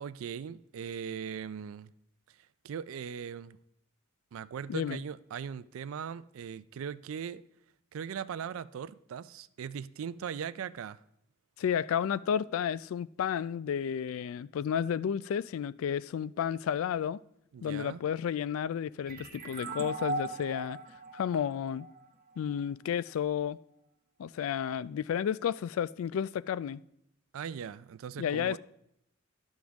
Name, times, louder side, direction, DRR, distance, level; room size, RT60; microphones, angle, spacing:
voice 1, 0.0-1.9 2.6-3.6 4.3-7.4 7.9-11.0 17.5-18.0 27.3-28.6, right 7 dB, 75° right, 0.3 m, -39 dB
voice 2, 4.7-5.0 11.6-17.2 17.6-20.8 21.1-21.9 22.4-23.6 24.2-26.8 28.2-28.6, left 8 dB, 75° left, 0.3 m, -32 dB
sound 1, 19.1-22.5, right 2 dB, 45° right, 1.0 m, -39 dB
11.5 x 7.2 x 3.5 m
head